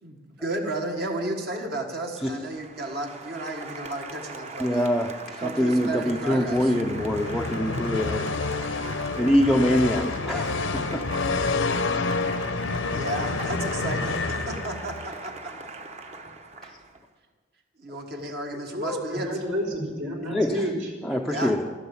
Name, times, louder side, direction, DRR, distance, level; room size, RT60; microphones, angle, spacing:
voice 1, 0.0-4.9 5.4-6.7 12.9-15.5 17.8-19.3 21.3-21.5, right 2 dB, 55° right, 1.5 m, -33 dB
Applause, 2.2-17.1, right 3 dB, 35° right, 0.9 m, -40 dB
voice 2, 4.6-8.3 9.2-11.2 16.6-16.7 20.3-20.7 21.0-21.7, equal, ahead, 0.5 m, -24 dB
sound 1, 6.5-15.1, left 3 dB, 75° left, 0.8 m, -28 dB
voice 3, 18.7-20.9, equal, 75° right, 4.1 m, -30 dB
12.5 x 12.0 x 7.0 m
head